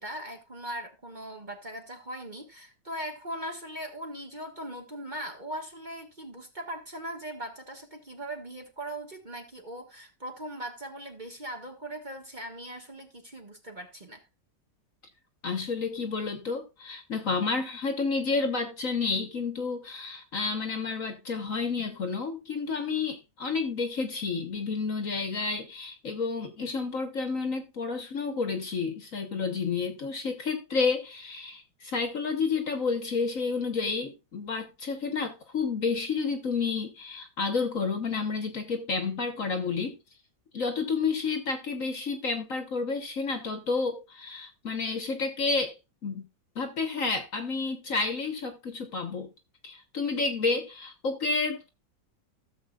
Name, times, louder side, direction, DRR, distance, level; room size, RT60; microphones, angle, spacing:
voice 1, 0.0-14.2, right 1 dB, 25° right, 1.6 m, -39 dB
voice 2, 15.4-39.9 40.5-45.7 46.0-46.2 46.5-49.3 49.6-51.7, left 4 dB, 50° left, 1.5 m, -30 dB
15.5 x 7.2 x 2.4 m
omnidirectional pair, 2.0 m